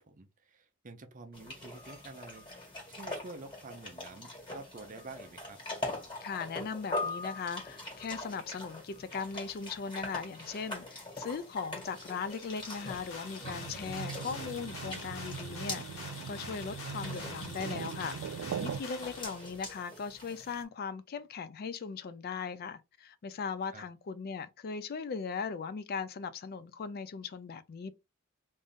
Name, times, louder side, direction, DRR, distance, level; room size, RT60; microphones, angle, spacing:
voice 1, 0.0-2.5 2.9-5.6 13.8-14.2 23.7-23.9, right 3 dB, 40° right, 0.6 m, -49 dB
sound 1, 1.3-20.6, left 2 dB, 25° left, 1.8 m, -43 dB
voice 2, 6.2-27.9, left 5 dB, 45° left, 0.4 m, -39 dB
sound 2, 12.3-19.2, left 3 dB, 80° left, 1.2 m, -46 dB
sound 3, 13.4-18.8, right 7 dB, 85° right, 0.3 m, -41 dB
3.5 x 2.6 x 3.5 m
head